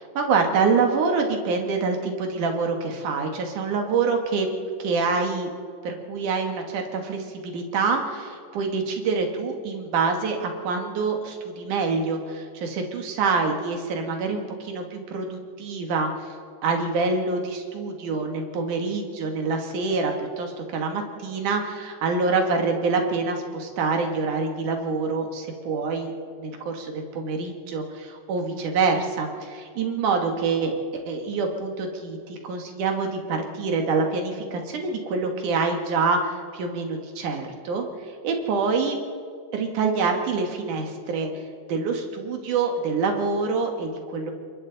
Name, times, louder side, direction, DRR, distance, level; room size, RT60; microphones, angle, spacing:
voice 1, 0.1-4.5 4.8-5.5 5.8-16.1 16.6-26.1 26.4-39.0 39.5-41.3 41.7-44.3, right 4 dB, 85° right, 3 dB, 3.2 m, -26 dB
28.5 x 23.5 x 4.0 m, 2.2 s
omnidirectional pair, 3.5 m